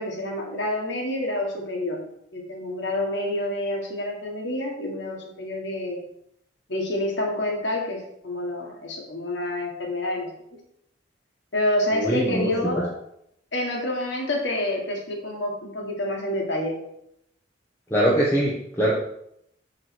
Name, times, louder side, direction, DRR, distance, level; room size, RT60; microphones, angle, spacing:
voice 1, 0.0-2.0 2.3-6.0 6.7-10.3 11.5-12.9 13.5-16.8, left 1 dB, 70° left, 0 dB, 1.5 m, -28 dB
voice 2, 12.0-12.5 17.9-18.9, equal, 10° left, -5 dB, 0.9 m, -22 dB
6.6 x 3.1 x 6.0 m, 0.75 s
head